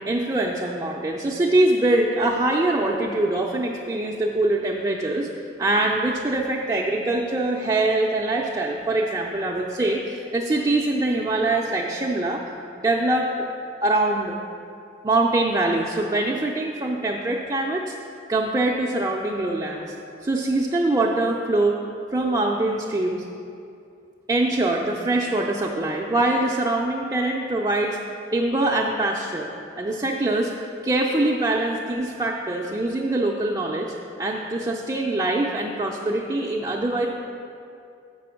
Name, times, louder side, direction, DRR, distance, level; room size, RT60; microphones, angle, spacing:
voice 1, 0.1-5.3 5.6-12.4 12.8-13.3 13.8-14.4 15.0-17.9 18.3-19.9 20.2-21.8 22.1-23.3 24.3-28.0 28.3-29.5 29.8-30.5 30.8-37.1, right 2 dB, 20° right, -2 dB, 0.4 m, -23 dB
7.0 x 6.0 x 5.7 m, 2.5 s
head